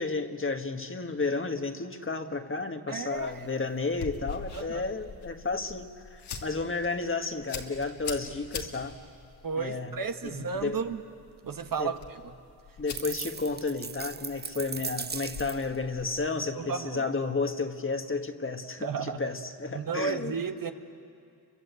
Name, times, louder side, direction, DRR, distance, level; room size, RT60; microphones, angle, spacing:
voice 1, 0.0-9.0 9.6-10.8 11.8-11.9 12.8-20.4, left 3 dB, 30° left, 6 dB, 1.7 m, -32 dB
voice 2, 2.9-3.5 4.5-4.8 9.4-11.0 11.4-12.3 16.5-17.1 18.8-19.3 19.7-20.7, right 5 dB, 55° right, 7 dB, 1.4 m, -33 dB
sound 1, 3.1-16.3, left 5 dB, 85° left, 2.6 m, -44 dB
sound 2, 13.0-15.8, right 5 dB, 25° right, 0.6 m, -38 dB
30.0 x 24.0 x 8.2 m, 2.4 s
cardioid pair, 75°, 39 cm